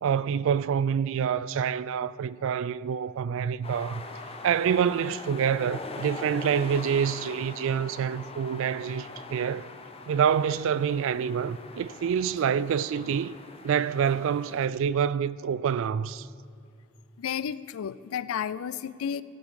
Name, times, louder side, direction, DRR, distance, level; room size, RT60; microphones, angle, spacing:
voice 1, 0.0-4.0 4.4-9.7 10.1-13.4 13.6-16.3, right 7 dB, 65° right, 0.3 m, -27 dB
sound 1, 3.6-14.7, left 3 dB, 30° left, 0.7 m, -42 dB
voice 2, 17.2-19.2, left 8 dB, 75° left, 0.4 m, -32 dB
17.0 x 7.0 x 4.8 m
head